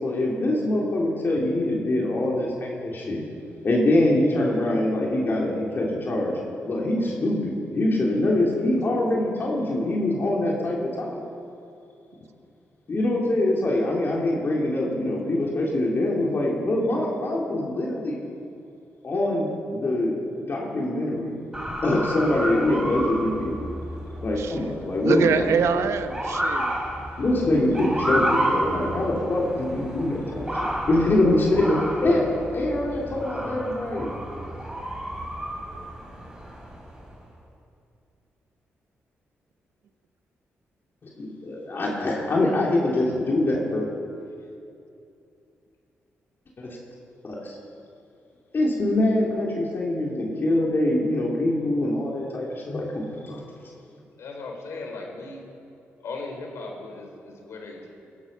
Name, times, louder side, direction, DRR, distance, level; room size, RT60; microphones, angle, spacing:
voice 1, 0.0-3.2 3.6-6.4 6.7-11.2 12.9-18.2 19.0-21.3 21.8-23.6 24.2-25.5 27.2-32.3 32.5-34.2 41.2-43.9 46.6-46.8 47.2-47.6 48.5-53.4, left 1 dB, 50° left, -3 dB, 3.3 m, -24 dB
Motor vehicle (road) / Siren, 21.5-37.1, equal, 15° right, 4.2 m, -31 dB
voice 2, 24.4-24.7 25.0-26.8, right 6 dB, 85° right, 9 dB, 1.0 m, -25 dB
voice 3, 54.2-55.4 56.0-57.9, left 3 dB, 75° left, 2 dB, 3.8 m, -37 dB
20.0 x 12.5 x 5.7 m, 2.6 s
cardioid pair, 80°, 5 cm